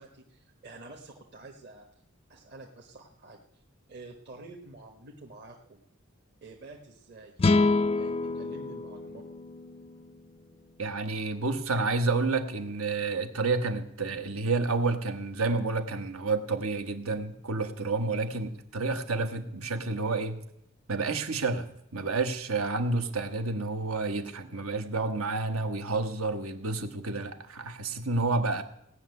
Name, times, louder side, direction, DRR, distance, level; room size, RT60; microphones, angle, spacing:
voice 1, 0.0-1.9 2.3-3.6 3.9-5.8 6.4-7.4 7.9-9.2, right 2 dB, 55° right, 0 dB, 1.4 m, -48 dB
sound 1, 7.4-10.7, left 3 dB, 25° left, 0.4 m, -28 dB
voice 2, 10.8-20.4 20.9-28.6, right 3 dB, 85° right, 7 dB, 1.4 m, -30 dB
17.0 x 6.5 x 9.6 m, 0.78 s
head